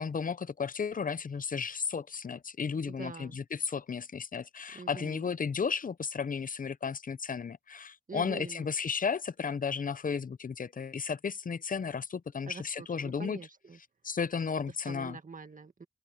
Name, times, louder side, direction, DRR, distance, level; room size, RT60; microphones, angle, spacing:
voice 1, 0.0-13.4 14.0-15.2, left 6 dB, 70° left, 0.6 m, -34 dB
voice 2, 2.8-3.4 4.7-5.3 8.1-8.7 12.4-13.8 14.8-15.9, right 4 dB, 65° right, 1.8 m, -45 dB
open air
cardioid pair, 45°, 15 cm